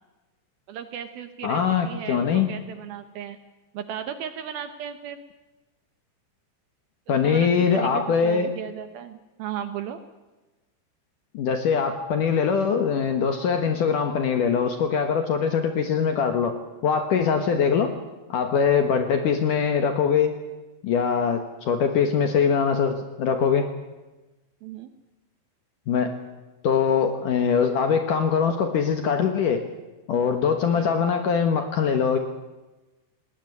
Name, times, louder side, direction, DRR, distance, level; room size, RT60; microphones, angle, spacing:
voice 1, 0.7-3.4 3.7-5.2 7.2-10.0 24.6-24.9 30.7-30.9, right 9 dB, 70° right, 10 dB, 2.4 m, -35 dB
voice 2, 1.4-2.5 7.1-8.5 11.3-16.6 16.8-17.9 18.3-20.3 20.8-23.7 25.9-26.1 26.6-29.6 30.1-32.2, left 6 dB, 65° left, 7 dB, 2.2 m, -22 dB
20.5 x 18.0 x 9.8 m, 1.1 s
omnidirectional pair, 5.2 m